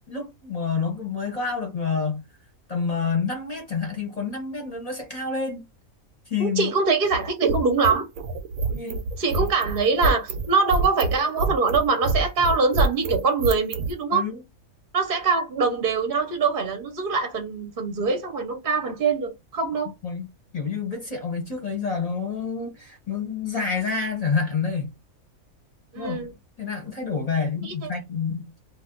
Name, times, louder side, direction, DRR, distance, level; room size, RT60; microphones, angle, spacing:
voice 1, 0.1-2.2 2.7-5.6 6.3-6.7 8.7-9.0 9.4-9.5 14.1-14.4 19.8-20.3 20.5-24.9 26.0-26.2 26.6-28.5, left 5 dB, 35° left, 0.8 m, -28 dB
voice 2, 6.4-8.1 9.2-14.3 14.9-19.9 25.9-26.3 27.6-27.9, right 4 dB, 45° right, 0.8 m, -23 dB
sound 1, 7.0-13.9, right 3 dB, 75° right, 1.0 m, -26 dB
2.6 x 2.3 x 3.7 m
omnidirectional pair, 1.5 m